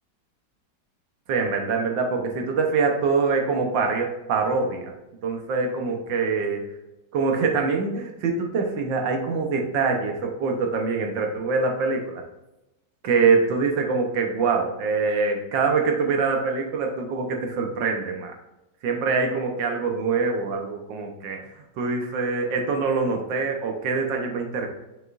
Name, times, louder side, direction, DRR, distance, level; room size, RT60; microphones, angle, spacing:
voice 1, 1.3-4.9 5.2-6.6 7.1-12.2 13.0-18.3 18.8-21.4 21.8-24.7, right 4 dB, 90° right, 2 dB, 1.7 m, -24 dB
6.6 x 6.5 x 2.5 m, 0.97 s
omnidirectional pair, 1.9 m